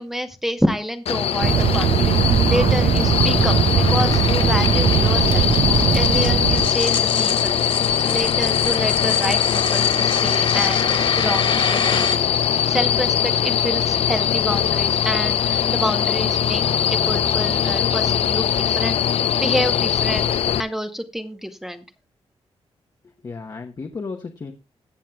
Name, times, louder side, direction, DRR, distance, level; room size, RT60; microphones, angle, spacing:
voice 1, 0.0-2.1 2.5-3.6 3.9-5.5 5.9-7.6 8.1-10.9 11.2-12.3 12.7-16.6 16.9-19.0 19.4-20.3 20.6-21.8, equal, 5° right, 7 dB, 0.8 m, -27 dB
sound 1, 1.1-20.6, left 9 dB, 70° left, 0.6 m, -21 dB
sound 2, 1.4-6.7, right 8 dB, 60° right, 0.5 m, -19 dB
sound 3, 1.7-12.2, left 5 dB, 55° left, 2.1 m, -29 dB
voice 2, 23.0-24.5, left 4 dB, 35° left, 3 dB, 0.9 m, -34 dB
21.0 x 7.3 x 2.2 m, 0.25 s
wide cardioid pair, 110°, 11 cm